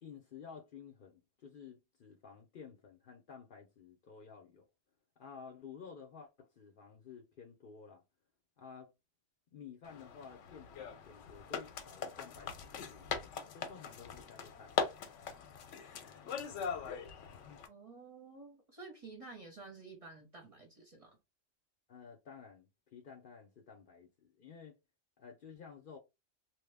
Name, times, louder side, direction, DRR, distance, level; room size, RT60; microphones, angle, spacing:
voice 1, 0.0-4.6 5.2-8.0 8.6-8.9 9.5-14.7 16.0-16.3 21.9-24.8 25.2-26.0, left 6 dB, 55° left, 0.7 m, -53 dB
sound 1, 9.8-17.7, left 6 dB, 85° left, 0.9 m, -41 dB
voice 2, 17.7-21.2, right 3 dB, 35° right, 0.7 m, -52 dB
3.0 x 2.1 x 3.3 m
omnidirectional pair, 1.2 m